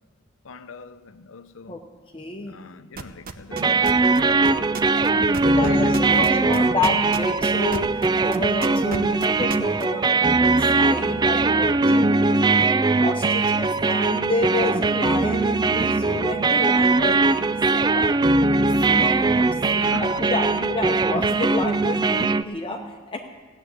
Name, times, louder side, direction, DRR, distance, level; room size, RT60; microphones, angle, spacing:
voice 1, 0.4-1.8 2.4-4.8 5.5-6.4 19.8-20.7, left 4 dB, 85° left, 0.7 m, -41 dB
voice 2, 2.1-2.5 5.1-7.9 8.2-12.4 13.0-18.2 18.9-23.2, left 2 dB, 25° left, 0.9 m, -30 dB
sound 1, 3.0-8.1 8.3-9.8, right 4 dB, 50° right, 0.8 m, -32 dB
sound 2, 3.5-22.4, right 3 dB, 20° right, 0.3 m, -20 dB
16.0 x 7.9 x 9.6 m
head